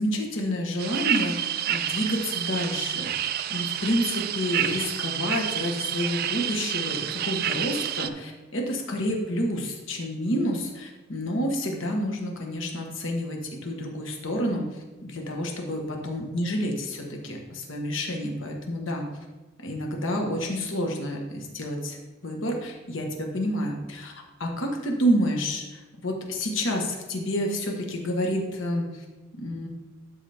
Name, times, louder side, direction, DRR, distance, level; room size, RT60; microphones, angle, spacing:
voice 1, 0.0-14.6 15.0-19.0 19.6-22.0 22.2-24.1 24.4-29.0 29.3-29.7, equal, 65° left, 1 dB, 1.4 m, -29 dB
sound 1, 0.8-8.1, right 10 dB, 50° right, 0.3 m, -29 dB
12.0 x 4.1 x 3.5 m, 1.2 s
head